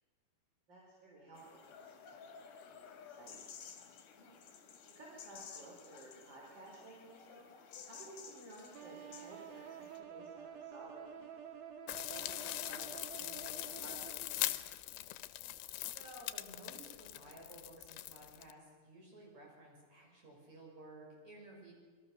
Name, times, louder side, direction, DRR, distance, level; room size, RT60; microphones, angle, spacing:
voice 1, 0.7-3.4 3.8-4.4 4.8-7.5 7.8-11.3 12.0-14.5, right 2 dB, 30° right, -2 dB, 4.2 m, -56 dB
sound 1, 1.3-10.0, left 7 dB, 60° left, 3.2 m, -54 dB
sound 2, 8.7-14.6, right 8 dB, 70° right, 3.5 m, -50 dB
sound 3, 11.9-18.5, left 15 dB, 85° left, 2.8 m, -42 dB
voice 2, 15.9-21.7, right 1 dB, 45° right, -1 dB, 7.5 m, -55 dB
26.5 x 21.5 x 6.6 m, 1.5 s
omnidirectional pair, 4.5 m